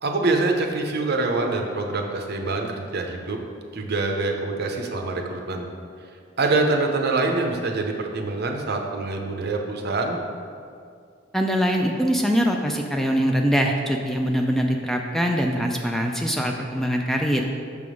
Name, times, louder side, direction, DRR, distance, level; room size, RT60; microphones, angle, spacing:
voice 1, 0.0-3.4 3.7-5.6 6.4-10.2, right 3 dB, 55° right, 3 dB, 0.7 m, -25 dB
voice 2, 11.3-17.4, equal, ahead, 2 dB, 0.3 m, -23 dB
6.7 x 3.6 x 6.3 m, 2.3 s
head